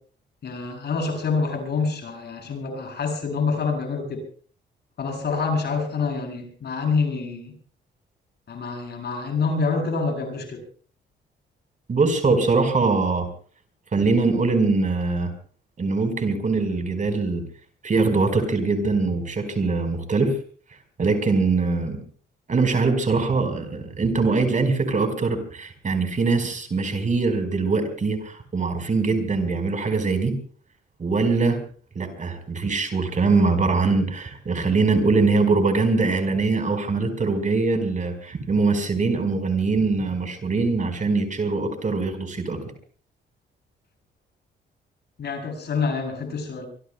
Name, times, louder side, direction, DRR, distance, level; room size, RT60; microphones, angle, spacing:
voice 1, 0.4-4.2 5.0-7.5 8.5-10.6 45.2-46.7, left 4 dB, 60° left, 4 dB, 7.9 m, -26 dB
voice 2, 11.9-13.3 13.9-15.3 15.8-17.4 17.8-20.4 21.0-22.0 22.5-30.3 31.0-31.6 31.9-42.6, right 3 dB, 40° right, 7 dB, 4.7 m, -22 dB
24.5 x 24.5 x 2.3 m, 0.43 s
cardioid pair, 80°, 19 cm